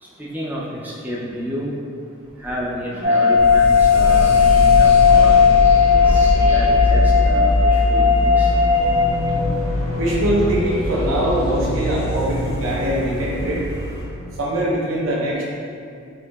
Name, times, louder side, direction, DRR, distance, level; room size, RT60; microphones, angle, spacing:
voice 1, 0.0-1.7 2.4-5.4 5.9-8.5, equal, 10° right, -6 dB, 0.3 m, -30 dB
sound 1, 2.9-14.1, equal, 35° right, 1.0 m, -36 dB
sound 2, 3.0-9.1, left 6 dB, 50° right, 1.3 m, -15 dB
sound 3, 3.4-14.0, left 1 dB, 90° left, 0.4 m, -22 dB
voice 2, 9.9-13.6 14.4-15.4, right 1 dB, 80° right, -4 dB, 0.7 m, -22 dB
4.5 x 2.7 x 2.3 m, 2.4 s
head